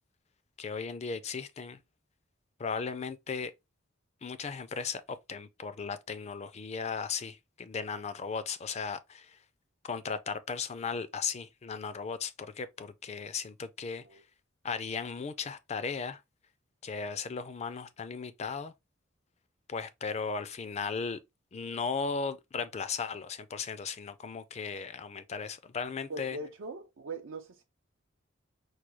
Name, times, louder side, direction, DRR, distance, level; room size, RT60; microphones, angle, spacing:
voice 1, 0.6-1.8 2.6-3.5 4.2-9.4 9.8-14.2 14.6-16.2 16.8-18.7 19.7-21.2 21.5-26.4, left 5 dB, 35° left, 0.4 m, -36 dB
voice 2, 26.1-27.6, right 2 dB, 80° right, 0.5 m, -41 dB
4.7 x 2.2 x 3.0 m
head